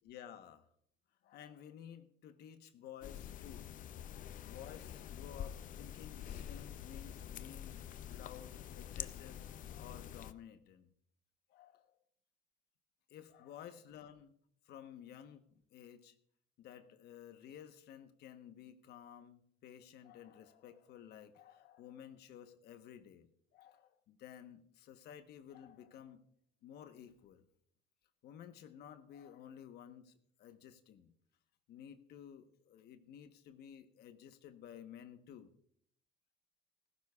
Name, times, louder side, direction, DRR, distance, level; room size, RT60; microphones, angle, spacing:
voice 1, 0.0-0.7 1.2-3.7 4.4-7.8 8.1-10.9 11.5-12.0 13.1-14.4 14.6-16.2 16.6-26.2 26.6-27.4 28.2-31.1 31.7-35.5, left 9 dB, 70° left, 9 dB, 1.1 m, -54 dB
sound 1, 3.0-10.3, left 10 dB, 50° left, 0.5 m, -47 dB
16.5 x 15.0 x 2.4 m, 0.66 s
cardioid pair, 110°, 17 cm